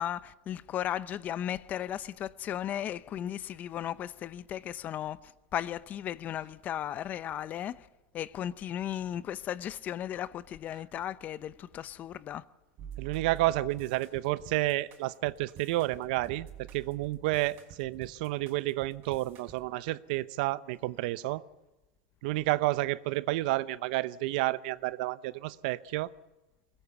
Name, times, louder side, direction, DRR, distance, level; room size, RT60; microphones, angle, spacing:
voice 1, 0.0-7.9 8.1-12.4, left 10 dB, 35° left, 0.8 m, -36 dB
sound 1, 12.8-19.6, right 9 dB, 50° right, 4.0 m, -47 dB
voice 2, 13.0-16.5 16.7-21.4 22.2-26.1, right 18 dB, 70° right, 0.8 m, -30 dB
21.5 x 20.0 x 7.1 m
supercardioid pair, 125°, 5 cm